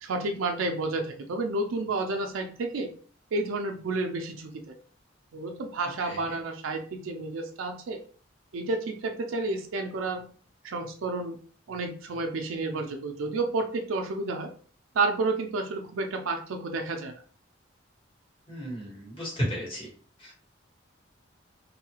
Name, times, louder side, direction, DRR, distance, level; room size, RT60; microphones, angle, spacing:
voice 1, 0.0-2.9 3.3-4.7 5.3-8.0 8.5-10.3 10.6-11.4 11.7-14.5 14.9-17.2, right 3 dB, 90° right, 4 dB, 0.4 m, -30 dB
voice 2, 18.5-19.9 20.2-20.4, equal, 25° left, -4 dB, 1.1 m, -33 dB
2.7 x 2.3 x 2.8 m, 0.42 s
head